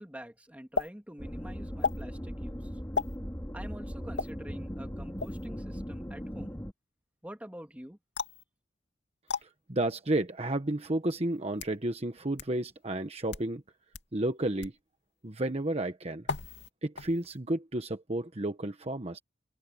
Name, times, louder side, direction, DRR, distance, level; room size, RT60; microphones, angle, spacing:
voice 1, 0.0-2.7 3.5-6.6 7.2-8.0, equal, 10° right, 2.3 m, -46 dB
sound 1, 0.8-0.9 1.8-2.0 3.0-3.2 4.2-4.3 5.2-5.5 8.2-8.4 9.3-9.4 10.4-10.5 11.3-11.8 12.4-12.5 13.2-13.5 13.9-14.1 14.6-14.8 16.3-16.7 17.0-17.4, left 4 dB, 85° left, 2.5 m, -34 dB
sound 2, 1.2-6.7, equal, 15° left, 5.0 m, -39 dB
voice 2, 9.4-13.6 14.1-14.7 15.2-16.2 16.8-19.2, right 1 dB, 35° right, 1.2 m, -32 dB
open air
head